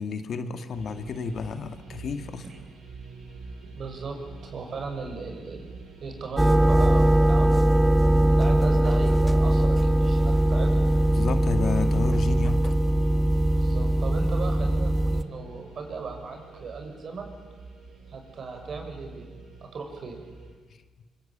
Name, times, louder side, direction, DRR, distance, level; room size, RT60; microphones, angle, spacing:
voice 1, 0.0-2.4 11.1-12.7, left 5 dB, 55° left, 8 dB, 2.1 m, -31 dB
sound 1, 0.7-20.5, right 3 dB, 75° right, 7.5 m, -46 dB
voice 2, 3.7-5.7 6.0-10.9 13.5-17.3 18.1-20.2, right 4 dB, 55° right, 4 dB, 6.7 m, -37 dB
sound 2, 6.4-15.2, right 1 dB, 5° right, 1.3 m, -21 dB
25.5 x 24.5 x 8.7 m, 1.4 s
cardioid pair, 90°, 0 cm